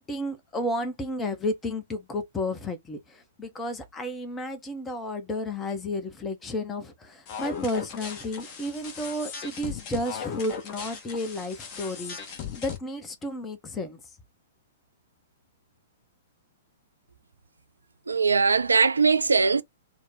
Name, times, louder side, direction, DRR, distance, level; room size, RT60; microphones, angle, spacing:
voice 1, 0.0-14.0, left 1 dB, 15° left, 0.7 m, -32 dB
sound 1, 7.3-12.8, left 7 dB, 35° left, 1.0 m, -38 dB
voice 2, 18.1-19.6, right 4 dB, 75° right, 0.4 m, -21 dB
3.0 x 2.1 x 3.4 m
figure-of-eight pair, 110°, 0 cm